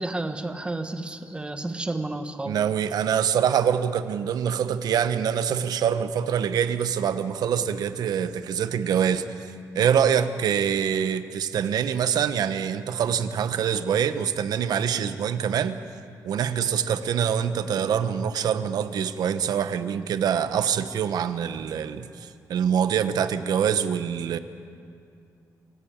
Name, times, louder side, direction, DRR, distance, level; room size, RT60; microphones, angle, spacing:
voice 1, 0.0-2.6, right 2 dB, 15° right, 8 dB, 1.3 m, -31 dB
voice 2, 2.4-9.2 9.7-15.8 16.2-24.4, right 8 dB, 75° right, 11 dB, 1.0 m, -25 dB
27.5 x 14.0 x 8.8 m, 2.4 s
cardioid pair, 140°, 7 cm